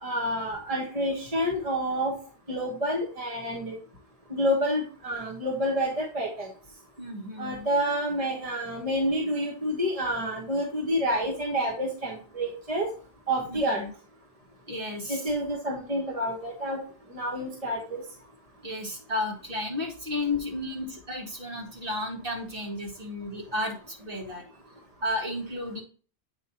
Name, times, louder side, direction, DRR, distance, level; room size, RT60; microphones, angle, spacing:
voice 1, 0.0-2.1 2.5-3.8 4.3-6.5 7.4-12.9 13.3-13.8 15.1-16.8 17.1-18.0, equal, 35° right, 0 dB, 1.4 m, -28 dB
voice 2, 7.0-7.7 13.5-13.9 14.7-15.3 18.6-24.4 25.0-25.8, left 2 dB, 55° right, 0 dB, 2.0 m, -33 dB
8.4 x 4.2 x 2.8 m, 0.39 s
omnidirectional pair, 1.1 m